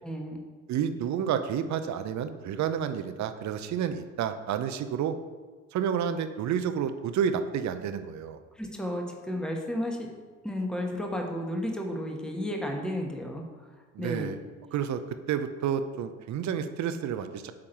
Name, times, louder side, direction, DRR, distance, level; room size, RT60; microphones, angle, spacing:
voice 1, 0.0-0.4 8.6-10.1 10.4-13.4 14.0-14.3, equal, ahead, 2 dB, 1.1 m, -32 dB
voice 2, 0.7-5.2 5.7-8.4 13.9-14.4 14.7-17.5, right 8 dB, 50° right, 10 dB, 0.7 m, -30 dB
8.7 x 3.7 x 4.4 m, 1.4 s
hypercardioid pair, 65°, 37 cm